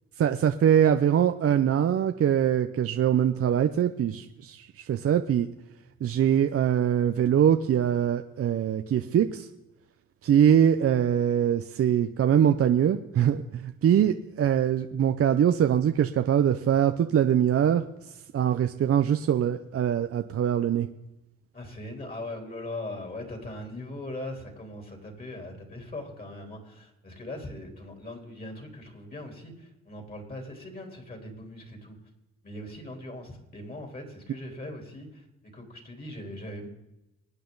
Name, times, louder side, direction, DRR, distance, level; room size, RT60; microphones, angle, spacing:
voice 1, 0.2-5.5 6.0-9.5 10.2-20.9, right 9 dB, 50° right, 8 dB, 0.7 m, -23 dB
voice 2, 21.5-32.0 32.4-36.7, left 1 dB, 30° left, 3 dB, 3.7 m, -40 dB
24.0 x 9.2 x 4.0 m, 0.95 s
cardioid pair, 90°, 30 cm